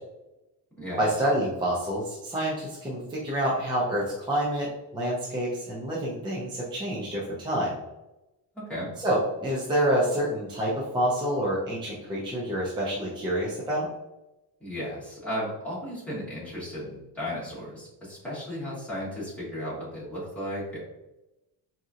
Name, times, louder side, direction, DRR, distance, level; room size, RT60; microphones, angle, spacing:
voice 1, 1.0-4.7 4.9-7.7 9.0-13.9, right 1 dB, 10° right, -6 dB, 0.5 m, -27 dB
voice 2, 8.5-8.9 14.6-20.8, equal, 5° left, -10 dB, 1.5 m, -35 dB
4.1 x 2.8 x 2.4 m, 0.96 s
cardioid pair, 175°, 40 cm